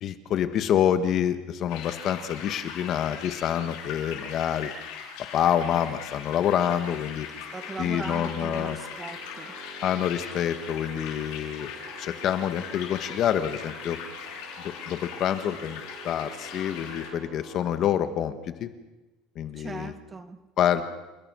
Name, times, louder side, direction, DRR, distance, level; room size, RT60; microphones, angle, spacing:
voice 1, 0.0-4.7 5.3-7.3 7.8-8.8 9.8-11.7 12.0-14.0 14.6-18.3 18.6-18.7 19.3-19.9 20.6-20.8, left 10 dB, 50° left, 10 dB, 1.7 m, -27 dB
sound 1, 1.7-17.1, left 7 dB, 80° left, 6.2 m, -40 dB
Organ, 7.3-18.3, right 4 dB, 55° right, 5.8 m, -48 dB
voice 2, 7.5-9.5 19.6-20.4, right 4 dB, 20° right, 10 dB, 1.8 m, -39 dB
29.5 x 17.5 x 6.4 m, 1.1 s
supercardioid pair, 125°, 0 cm